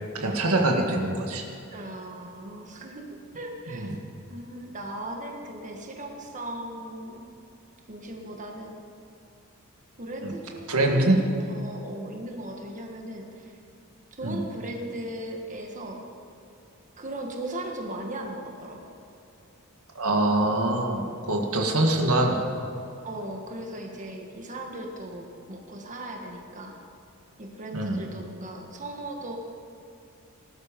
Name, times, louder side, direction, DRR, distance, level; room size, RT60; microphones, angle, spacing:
voice 1, 0.1-1.5 3.7-4.0 10.2-10.3 10.7-11.2 14.2-14.4 20.0-22.4 27.7-28.0, right 1 dB, 75° right, 2 dB, 1.9 m, -24 dB
voice 2, 1.7-4.0 4.3-7.2 7.9-8.8 10.0-13.6 14.2-16.0 17.0-18.8 23.0-26.8 27.4-29.4, right 1 dB, 35° right, 1 dB, 1.6 m, -38 dB
19.0 x 12.5 x 5.2 m, 2.7 s
head